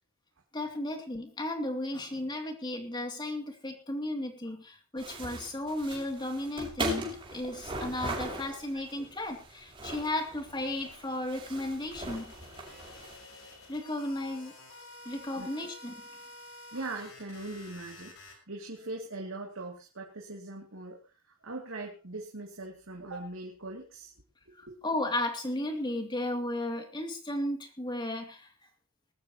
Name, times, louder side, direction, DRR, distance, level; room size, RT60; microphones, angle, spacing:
voice 1, 0.5-12.3 13.7-14.5 15.0-16.0 24.6-28.5, left 1 dB, 20° left, 4 dB, 2.8 m, -34 dB
sound 1, 5.0-13.2, right 1 dB, 25° right, 6.3 m, -39 dB
sound 2, 11.9-18.3, left 2 dB, 65° left, 5.6 m, -50 dB
voice 2, 16.7-21.0 21.3-24.1 24.6-24.8, right 2 dB, 60° right, -1 dB, 2.7 m, -41 dB
20.5 x 13.5 x 3.0 m, 0.31 s
head